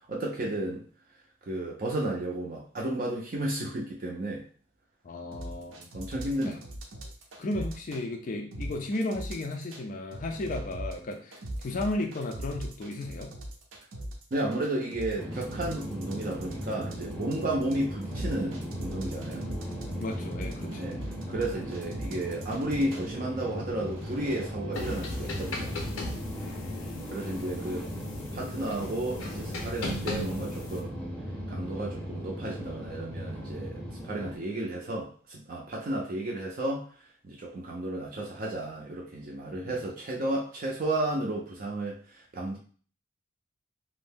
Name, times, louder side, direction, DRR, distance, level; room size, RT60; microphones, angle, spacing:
voice 1, 0.1-0.9 1.5-4.4 5.9-6.6 14.3-19.5 20.7-21.0 21.3-25.7 27.1-27.9 28.3-31.0 31.5-33.8 34.0-42.6, right 1 dB, 40° right, -2 dB, 0.4 m, -33 dB
voice 2, 5.0-5.9 6.4-6.6 7.4-13.3 20.0-21.0 26.4-27.5 39.5-39.8, left 2 dB, 40° left, 3 dB, 0.3 m, -35 dB
sound 1, 5.3-8.0 8.5-9.8 10.1-23.1 23.7-24.5, right 1 dB, 85° right, 0.6 m, -40 dB
sound 2, 15.2-34.4, equal, 5° left, 0.7 m, -37 dB
sound 3, 24.7-30.8, left 1 dB, 85° left, 0.6 m, -38 dB
2.6 x 2.1 x 3.4 m, 0.43 s
head